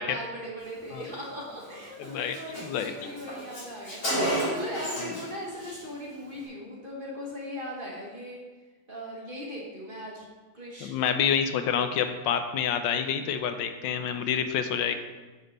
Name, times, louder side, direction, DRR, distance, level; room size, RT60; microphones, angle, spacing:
voice 1, 0.0-8.4 8.9-10.3 10.5-10.9 14.9-15.0, equal, 30° right, -3 dB, 1.4 m, -39 dB
Car, 1.6-1.8 2.0-2.1 2.3-5.3 5.5-5.8, equal, 55° left, 3.5 m, -31 dB
voice 2, 2.0-2.4 2.6-2.9 5.0-5.1 10.8-14.9, left 8 dB, 80° left, 9 dB, 1.3 m, -28 dB
9.5 x 5.3 x 3.9 m, 1.3 s
omnidirectional pair, 2.0 m